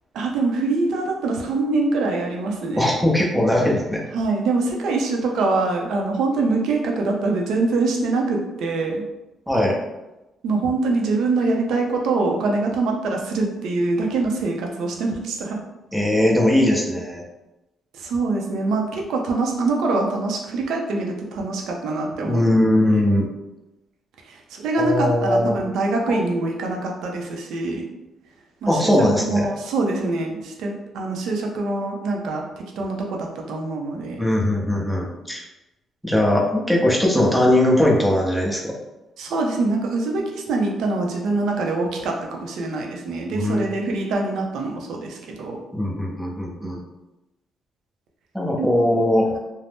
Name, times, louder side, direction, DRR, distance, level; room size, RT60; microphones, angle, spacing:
voice 1, 0.1-2.9 4.1-9.0 10.4-15.6 17.9-22.4 24.3-27.8 28.6-28.9 29.2-32.4 32.8-34.3 39.2-45.6 48.6-48.7, right 3 dB, 80° right, 1 dB, 0.5 m, -24 dB
voice 2, 2.8-4.1 9.5-9.8 15.9-17.2 22.2-23.3 24.8-25.6 26.1-26.2 28.7-29.5 34.2-35.4 36.0-38.7 43.3-43.7 45.7-46.8 48.3-49.3, left 1 dB, 5° right, -2 dB, 0.7 m, -20 dB
2.6 x 2.0 x 3.4 m, 0.99 s
cardioid pair, 90°, 0 cm